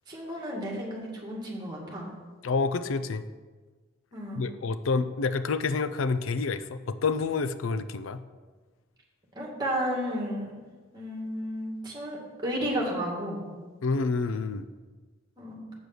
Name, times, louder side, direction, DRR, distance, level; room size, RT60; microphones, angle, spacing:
voice 1, 0.1-2.1 4.1-4.4 9.3-10.6 10.9-12.2 12.4-13.4 15.4-15.6, equal, 20° right, -3 dB, 2.2 m, -32 dB
voice 2, 2.4-3.2 4.4-8.2 13.8-14.7, left 4 dB, 80° left, 12 dB, 0.5 m, -28 dB
8.1 x 6.8 x 6.1 m, 1.4 s
head